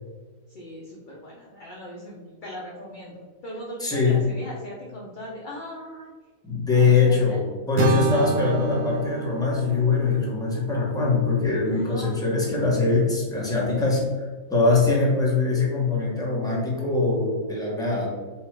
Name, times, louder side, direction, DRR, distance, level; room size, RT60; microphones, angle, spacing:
voice 1, 0.5-6.1 6.7-7.4 8.2-8.3 11.7-12.4, left 1 dB, 55° left, -3 dB, 0.5 m, -39 dB
voice 2, 3.8-4.3 6.4-18.1, left 4 dB, 5° left, -5 dB, 0.9 m, -22 dB
sound 1, 7.8-11.8, right 6 dB, 70° right, 0.6 m, -29 dB
4.3 x 2.4 x 4.3 m, 1.4 s
omnidirectional pair, 1.6 m